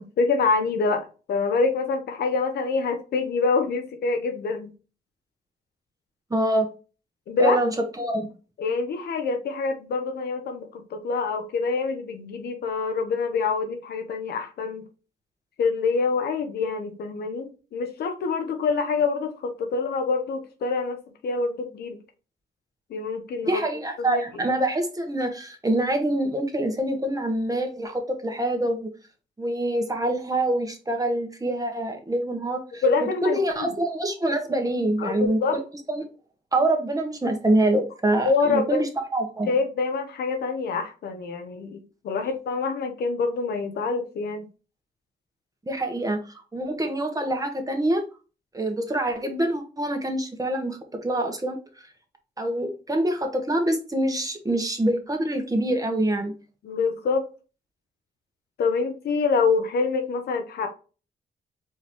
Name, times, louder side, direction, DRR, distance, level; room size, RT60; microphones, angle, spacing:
voice 1, 0.0-4.7 7.3-7.6 8.6-14.9 15.6-22.0 22.9-23.6 24.0-24.2 32.8-33.7 35.0-35.6 38.2-38.8 39.5-44.5 56.6-57.3 58.6-60.7, left 4 dB, 80° left, 6 dB, 0.9 m, -26 dB
voice 2, 6.3-6.7 7.4-8.3 23.4-28.9 29.4-32.8 33.2-35.6 35.9-36.0 36.5-39.5 45.7-46.2 46.5-48.0 48.5-51.6 52.4-56.3, right 1 dB, 20° right, 4 dB, 1.3 m, -25 dB
4.6 x 3.0 x 3.5 m, 0.34 s
cardioid pair, 65°, 17 cm